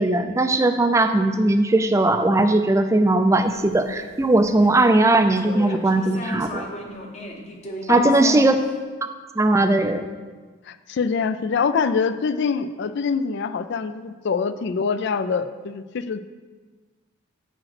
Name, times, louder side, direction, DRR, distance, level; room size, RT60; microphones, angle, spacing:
voice 1, 0.0-6.7 7.9-8.6 9.4-10.1, right 2 dB, 15° right, 8 dB, 0.4 m, -19 dB
sound 1, 3.5-4.7 5.0-8.7, equal, 35° left, 0.8 m, -36 dB
voice 2, 7.9-8.5 10.7-16.2, left 5 dB, 55° left, 12 dB, 0.4 m, -24 dB
7.4 x 5.1 x 5.8 m, 1.4 s
head